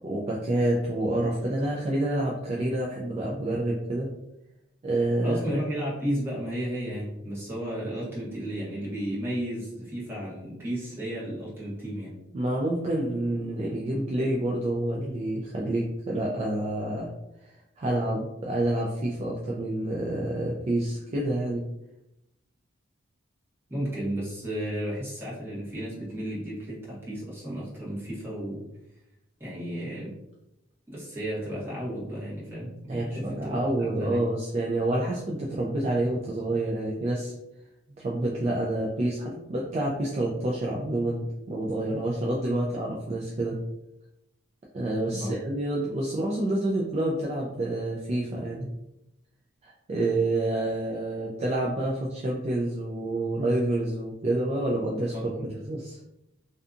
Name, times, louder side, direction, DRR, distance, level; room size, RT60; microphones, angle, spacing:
voice 1, 0.0-4.1 4.8-5.4 12.3-17.1 17.4-21.6 32.9-37.3 38.0-43.6 44.7-48.7 49.6-56.0, right 1 dB, 35° right, -3 dB, 0.3 m, -28 dB
voice 2, 5.2-12.1 23.7-28.6 29.4-30.1 30.9-34.2 45.1-45.3 55.1-55.5, equal, 10° right, -8 dB, 1.1 m, -33 dB
2.6 x 2.4 x 2.4 m, 0.88 s
head